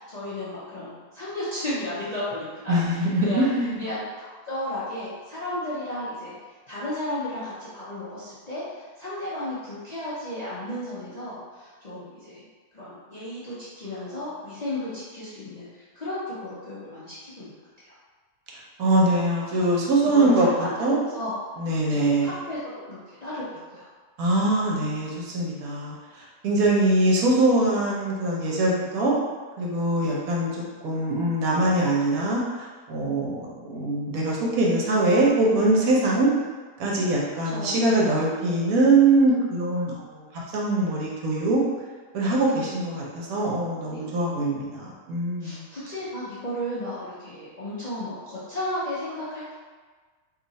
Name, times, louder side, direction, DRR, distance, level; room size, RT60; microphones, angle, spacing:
voice 1, 0.0-3.4 3.8-6.4 6.7-12.4 12.7-18.0 20.0-21.3 21.9-22.6 22.8-23.9 30.0-30.2 37.4-38.0 42.4-42.7 43.9-44.0 45.4-49.5, left 1 dB, 40° left, -12 dB, 0.6 m, -34 dB
voice 2, 2.7-3.8 18.8-20.5 20.8-21.0 21.6-22.3 24.2-26.0 26.4-29.1 29.6-30.5 30.8-32.4 32.9-36.3 36.8-40.2 40.5-41.6 42.1-45.6, right 2 dB, 75° right, -4 dB, 1.2 m, -22 dB
2.7 x 2.4 x 4.0 m, 1.4 s
omnidirectional pair, 1.6 m